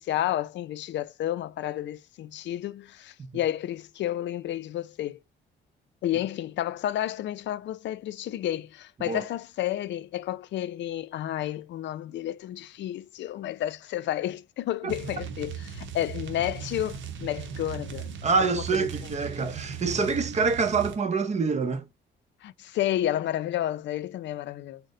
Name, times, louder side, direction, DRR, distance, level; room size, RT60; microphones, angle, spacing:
voice 1, 0.0-5.2 6.0-18.2 18.5-18.9 22.4-24.8, left 12 dB, 65° left, 0.4 m, -31 dB
sound 1, 14.9-21.0, right 7 dB, 70° right, 0.7 m, -38 dB
voice 2, 18.2-21.8, right 4 dB, 35° right, 0.7 m, -26 dB
4.0 x 2.1 x 3.7 m
cardioid pair, 90°, 20 cm